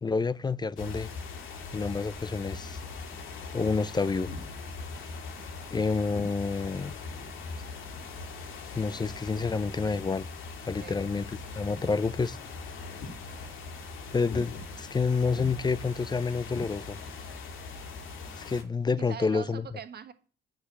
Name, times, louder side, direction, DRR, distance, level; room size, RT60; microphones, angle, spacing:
voice 1, 0.0-1.1 1.7-2.8 3.5-4.3 5.7-7.0 8.7-10.3 10.6-11.3 11.5-12.4 14.1-17.0 18.4-19.7, left 4 dB, 20° left, 0.5 m, -28 dB
sound 1, 0.7-18.6, left 4 dB, 80° left, 2.3 m, -41 dB
voice 2, 10.8-11.1 19.0-20.1, right 8 dB, 55° right, 1.6 m, -42 dB
10.0 x 6.4 x 8.3 m
cardioid pair, 90°, 20 cm